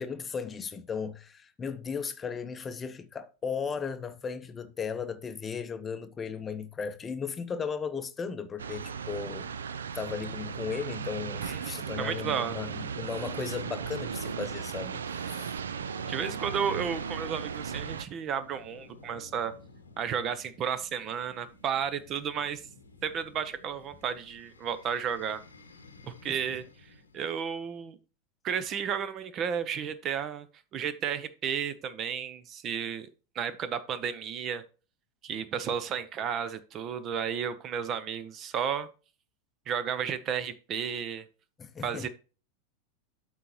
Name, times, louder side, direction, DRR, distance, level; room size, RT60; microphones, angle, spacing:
voice 1, 0.0-9.6 9.9-15.5 26.3-26.4 41.6-42.1, left 6 dB, 20° left, 0.7 m, -36 dB
sound 1, 8.6-18.0, right 6 dB, 75° right, 0.4 m, -36 dB
voice 2, 11.4-12.6 16.1-19.5 20.0-22.7 23.0-25.4 26.0-28.0 28.4-30.5 30.7-33.1 33.3-34.6 35.2-38.9 39.7-41.2 41.8-42.1, right 7 dB, 35° right, 0.7 m, -33 dB
sound 2, 15.9-27.2, left 4 dB, 85° left, 0.9 m, -54 dB
12.0 x 4.1 x 2.9 m
figure-of-eight pair, 90°, 0 cm